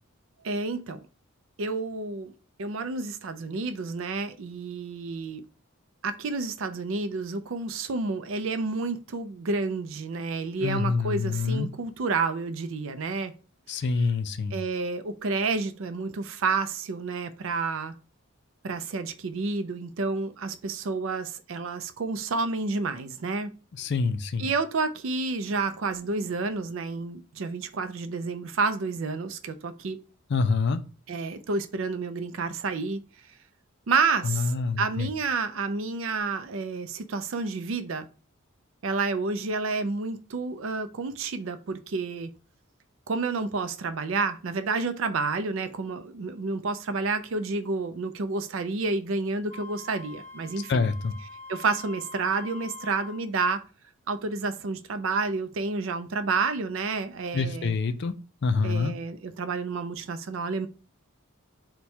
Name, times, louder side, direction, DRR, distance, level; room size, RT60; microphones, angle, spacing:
voice 1, 0.4-1.0 1.6-2.3 2.6-5.4 6.0-13.3 14.5-17.9 18.6-23.5 24.4-30.0 31.1-33.0 33.9-38.1 38.8-42.3 43.1-50.9 51.5-53.6 54.1-57.8 58.6-60.7, right 4 dB, 65° right, 0.4 m, -30 dB
voice 2, 10.6-11.7 13.7-14.5 23.8-24.5 30.3-30.8 34.2-35.1 50.7-51.1 57.3-58.1 58.4-58.9, left 4 dB, 50° left, 0.4 m, -26 dB
Wind instrument woodwind instrument, 49.5-53.2, left 3 dB, 15° left, 1.1 m, -44 dB
4.3 x 2.2 x 4.5 m
head